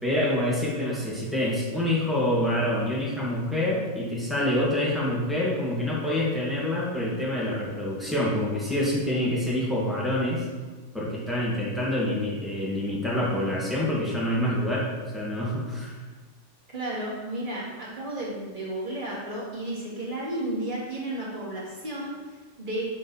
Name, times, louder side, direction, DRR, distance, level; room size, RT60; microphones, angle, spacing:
voice 1, 0.0-10.5 10.9-15.9, left 1 dB, ahead, -6 dB, 2.0 m, -26 dB
voice 2, 16.7-22.9, right 1 dB, 40° right, -7 dB, 2.4 m, -33 dB
10.0 x 4.0 x 4.1 m, 1.4 s
omnidirectional pair, 1.3 m